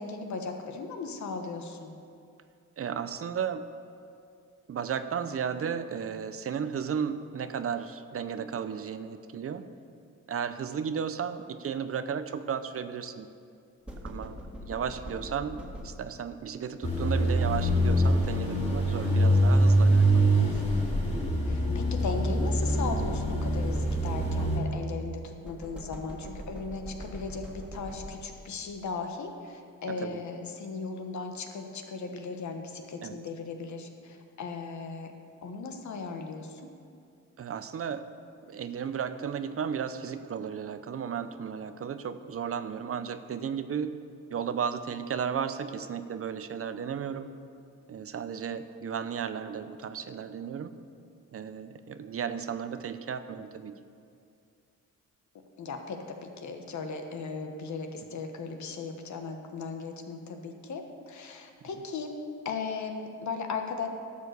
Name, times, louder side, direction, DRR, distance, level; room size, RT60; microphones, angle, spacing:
voice 1, 0.0-1.9 20.3-21.0 21.4-35.1 35.4-36.6 55.6-62.1 62.4-63.9, left 4 dB, 65° left, 5 dB, 1.3 m, -37 dB
voice 2, 2.8-3.7 4.7-9.6 10.3-13.3 14.0-20.3 29.9-30.2 33.0-33.2 37.4-38.1 38.4-43.9 44.3-47.3 47.9-50.8 51.3-53.7, right 7 dB, 50° right, 11 dB, 0.6 m, -34 dB
sound 1, 13.9-16.3 17.7-21.2 22.7-24.9 25.4-28.5, equal, 5° right, 1.8 m, -42 dB
sound 2, 16.8-24.6, right 1 dB, 20° left, 2.9 m, -24 dB
12.0 x 6.8 x 6.7 m, 2.4 s
cardioid pair, 95°, 31 cm